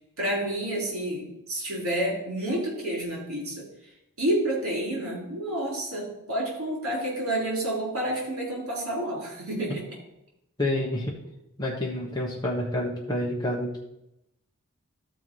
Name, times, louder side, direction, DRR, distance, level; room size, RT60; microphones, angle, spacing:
voice 1, 0.2-3.7 4.2-9.9, right 1 dB, 70° right, -2 dB, 3.7 m, -29 dB
voice 2, 10.6-11.1 11.6-13.8, left 1 dB, 20° left, -3 dB, 1.2 m, -28 dB
13.0 x 4.7 x 4.6 m, 0.85 s
head